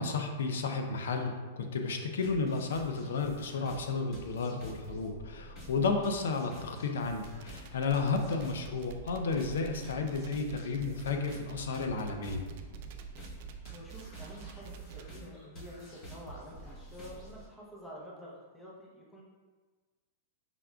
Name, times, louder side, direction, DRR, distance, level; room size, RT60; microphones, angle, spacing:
voice 1, 0.0-12.4, left 4 dB, 85° left, 5 dB, 0.5 m, -32 dB
sound 1, 2.2-17.5, equal, 35° left, 1.1 m, -50 dB
sound 2, 7.2-15.2, right 9 dB, 55° right, 0.4 m, -47 dB
voice 2, 13.7-19.2, equal, 5° left, -5 dB, 0.8 m, -48 dB
5.2 x 3.4 x 2.3 m, 1.4 s
hypercardioid pair, 145°, 0 cm